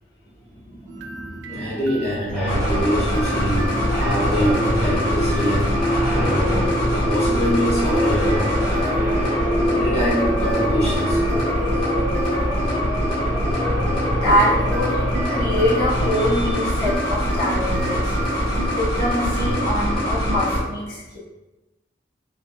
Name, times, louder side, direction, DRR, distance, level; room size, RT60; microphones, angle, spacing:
voice 1, 0.7-1.7 12.6-12.7 14.1-18.1 18.7-21.2, equal, 65° left, -10 dB, 1.1 m, -24 dB
sound 1, 0.9-6.2 7.4-13.2 14.3-20.4, right 3 dB, 85° right, 0.3 m, -36 dB
voice 2, 1.5-5.7 6.1-8.7 9.7-11.2, equal, 35° left, -6 dB, 0.9 m, -25 dB
sound 2, 2.3-16.3, equal, ahead, 0.7 m, -25 dB
sound 3, 2.5-20.6, equal, 90° left, 1.2 m, -23 dB
3.7 x 2.3 x 2.4 m, 1.1 s
head